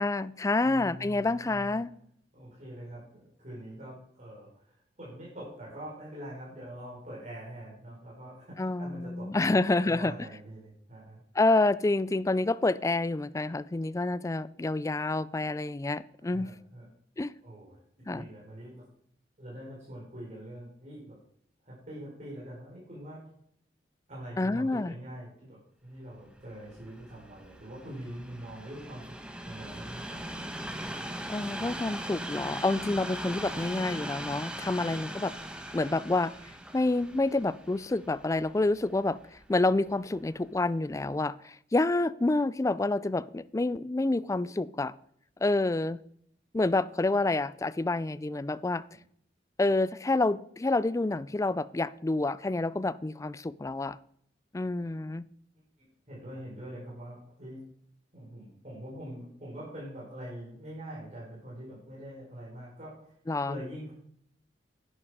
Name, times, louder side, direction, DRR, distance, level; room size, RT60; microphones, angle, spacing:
voice 1, 0.0-1.9 8.6-10.1 11.3-16.5 17.2-17.3 18.1-18.3 24.4-24.9 31.3-35.3 35.7-36.3 36.7-44.9 45.4-46.0 46.5-48.8 49.6-54.0 54.5-55.3 63.3-63.6, left 2 dB, 15° left, 18 dB, 0.4 m, -28 dB
voice 2, 0.6-1.8 2.3-11.2 16.2-16.9 17.4-17.8 18.1-18.8 19.4-21.2 21.6-23.2 24.1-30.5 56.1-57.6 58.1-63.1 63.4-63.9, right 1 dB, 40° right, -6 dB, 4.4 m, -44 dB
Train, 26.4-39.6 40.3-40.4, right 1 dB, 5° right, 1.1 m, -40 dB
11.0 x 9.7 x 4.9 m, 0.66 s
head